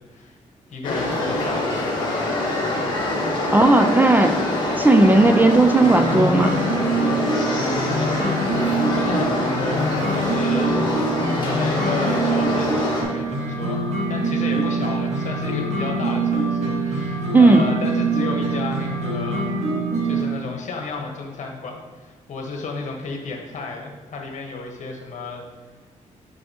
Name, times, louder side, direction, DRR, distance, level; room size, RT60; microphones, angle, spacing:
voice 1, 0.7-2.4 8.4-10.7 11.4-19.6 20.0-25.4, left 3 dB, 65° left, 1 dB, 1.2 m, -32 dB
sound 1, 0.8-13.0, left 2 dB, 35° left, 1.5 m, -25 dB
voice 2, 3.5-4.4 4.8-6.5 17.3-17.6, right 2 dB, 15° right, 6 dB, 0.3 m, -15 dB
sound 2, 5.8-20.2, right 2 dB, 60° right, 1.4 m, -24 dB
6.6 x 5.5 x 2.8 m, 1.4 s
cardioid pair, 130°, 13 cm